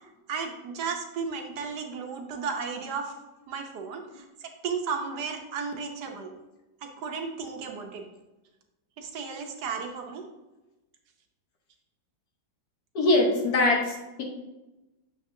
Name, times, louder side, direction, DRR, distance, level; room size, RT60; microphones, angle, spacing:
voice 1, 0.3-3.1 3.5-4.2 4.6-6.3 6.8-8.0 9.0-10.3, right 5 dB, 70° right, 3 dB, 1.3 m, -34 dB
voice 2, 12.9-14.2, left 2 dB, 65° left, 0 dB, 1.6 m, -23 dB
6.9 x 6.1 x 2.7 m, 1.0 s
omnidirectional pair, 1.9 m